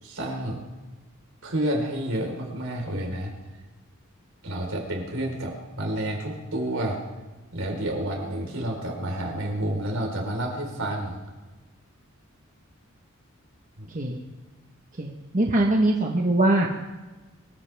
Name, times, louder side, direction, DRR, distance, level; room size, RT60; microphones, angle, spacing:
voice 1, 0.0-0.6 1.4-3.3 4.4-7.0 7.5-11.2 13.8-13.9, right 1 dB, 75° right, 0 dB, 4.4 m, -29 dB
voice 2, 15.0-16.7, right 1 dB, 40° right, 0 dB, 1.3 m, -22 dB
24.0 x 15.0 x 3.6 m, 1.2 s
head